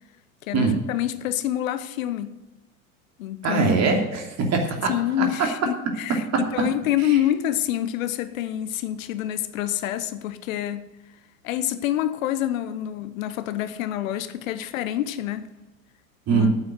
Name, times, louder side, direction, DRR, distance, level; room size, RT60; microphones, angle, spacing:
voice 1, 0.4-2.4 3.2-3.7 4.9-10.9 11.4-15.5 16.3-16.5, left 12 dB, 65° left, 0.9 m, -27 dB
voice 2, 3.4-4.9 5.2-5.3 6.3-6.4 7.1-7.2 16.3-16.5, right 4 dB, 35° right, 2.9 m, -22 dB
8.8 x 8.6 x 7.9 m
hypercardioid pair, 85°, 44 cm